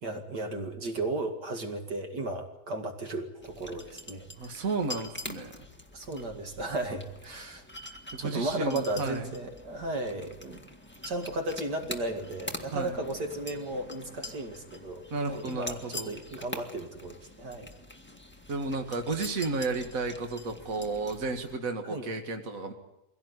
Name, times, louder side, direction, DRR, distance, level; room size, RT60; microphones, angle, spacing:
voice 1, 0.0-4.6 5.9-7.6 8.2-10.7 11.0-17.7 21.8-22.0, right 2 dB, 90° right, 5 dB, 2.8 m, -35 dB
sound 1, 3.4-21.6, left 1 dB, 5° left, 1.8 m, -45 dB
voice 2, 4.4-5.7 8.1-9.3 12.7-13.0 15.1-16.1 18.5-22.7, right 3 dB, 55° right, 5 dB, 2.2 m, -33 dB
24.0 x 17.0 x 9.6 m, 0.91 s
omnidirectional pair, 1.7 m